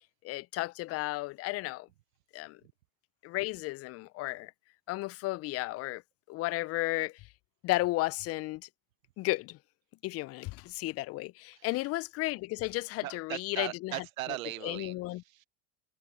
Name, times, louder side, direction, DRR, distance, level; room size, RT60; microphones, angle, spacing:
voice 1, 0.2-1.9 2.3-2.6 3.2-4.5 4.9-6.0 6.3-7.1 7.6-8.6 9.2-9.6 10.0-13.9 14.6-15.2, left 19 dB, 35° left, 0.5 m, -33 dB
voice 2, 11.5-11.9 12.7-15.5, right 16 dB, 80° right, 0.6 m, -40 dB
hypercardioid pair, 90°, 40 cm